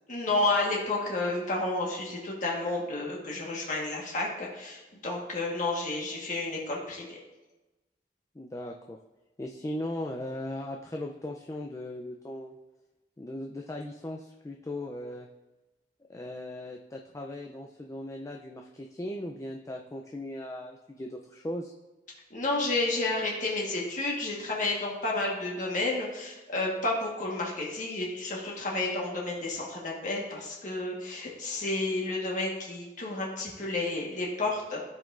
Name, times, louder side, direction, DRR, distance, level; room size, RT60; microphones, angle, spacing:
voice 1, 0.1-7.2 22.3-34.8, left 2 dB, 45° left, -3 dB, 1.3 m, -31 dB
voice 2, 8.4-9.0 9.4-12.6 13.2-15.3 16.1-21.7, left 1 dB, 15° left, 1 dB, 0.4 m, -38 dB
13.5 x 5.2 x 2.5 m, 1.1 s
head